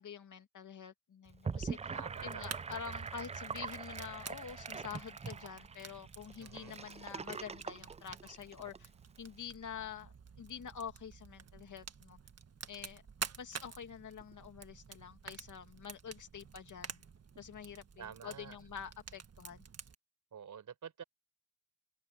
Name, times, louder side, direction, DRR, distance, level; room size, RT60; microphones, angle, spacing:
voice 1, 0.0-2.0 2.2-8.9 9.2-12.2 12.7-13.0 13.4-17.0 17.4-19.7, left 7 dB, 85° left, 2.5 m, -47 dB
Gurgling / Sink (filling or washing), 1.3-8.8, right 5 dB, 20° right, 0.4 m, -43 dB
voice 2, 1.9-2.6 6.4-6.8 18.0-18.6 20.3-21.0, right 8 dB, 85° right, 4.4 m, -49 dB
Fire, 2.0-19.9, right 6 dB, 55° right, 1.6 m, -50 dB
open air
cardioid pair, 85°, 30 cm